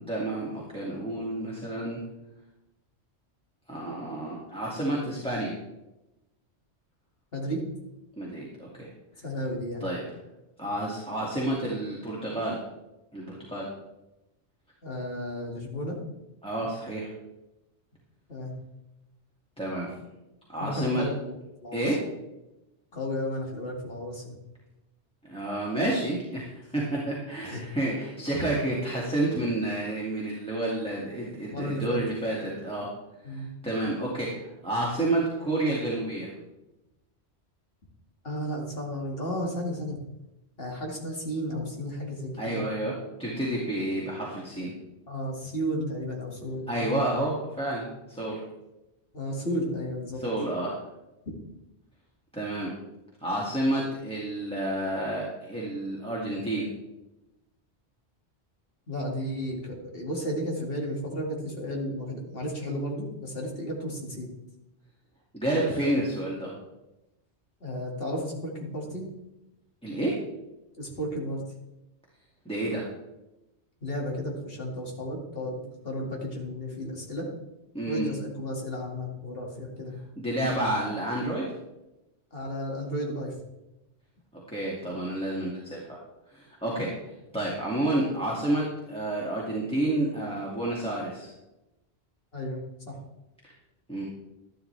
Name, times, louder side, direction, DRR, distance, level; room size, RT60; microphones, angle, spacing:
voice 1, 0.0-2.0 3.7-5.5 8.2-8.9 9.8-10.0 10.6-12.6 13.1-13.7 16.4-17.1 19.6-20.0 20.5-21.0 21.7-22.0 25.3-32.9 33.3-36.3 42.4-42.9 43.2-44.7 46.7-48.4 50.2-50.8 52.3-52.7 53.2-56.7 65.3-66.5 69.8-70.2 72.5-72.8 77.7-78.1 80.2-81.5 84.5-86.0 86.3-91.3 93.9-94.0, right 1 dB, 5° left, -5 dB, 2.1 m, -30 dB
voice 2, 7.3-7.7 9.2-9.9 14.8-16.0 18.3-18.6 20.6-22.0 22.9-24.4 27.4-27.7 28.3-28.4 31.5-32.0 33.2-33.5 38.2-40.0 40.6-42.6 45.1-47.0 49.1-50.2 58.9-64.3 67.6-69.1 70.8-71.4 73.8-77.3 77.8-80.0 82.3-83.4 92.3-93.0, equal, 55° left, -1 dB, 2.4 m, -33 dB
12.5 x 11.5 x 3.3 m, 0.95 s
omnidirectional pair, 1.1 m